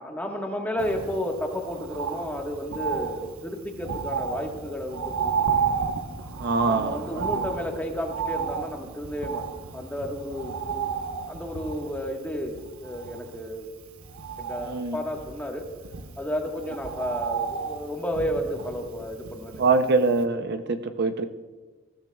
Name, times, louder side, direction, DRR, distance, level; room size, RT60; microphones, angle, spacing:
voice 1, 0.0-5.5 6.6-9.4 9.7-10.9 11.3-13.7 14.4-15.7 16.2-19.6, equal, 10° left, 1 dB, 1.4 m, -32 dB
Bird, 0.8-19.9 20.2-20.3, right 6 dB, 90° right, 1.0 m, -33 dB
voice 2, 6.4-7.4 14.6-15.0 19.6-21.3, right 3 dB, 50° right, 8 dB, 0.6 m, -24 dB
19.5 x 15.0 x 2.3 m, 1.3 s
head